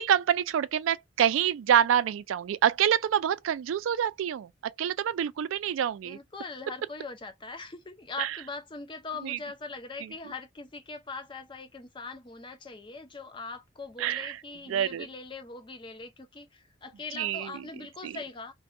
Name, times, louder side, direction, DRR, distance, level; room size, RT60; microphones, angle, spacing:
voice 1, 0.0-6.2 8.2-8.4 9.2-9.4 10.0-10.1 14.0-14.4 14.7-15.1 17.1-17.6 18.0-18.2, right 9 dB, 75° right, 0.3 m, -27 dB
voice 2, 6.0-18.5, left 3 dB, 25° left, 0.5 m, -41 dB
2.6 x 2.2 x 2.5 m
head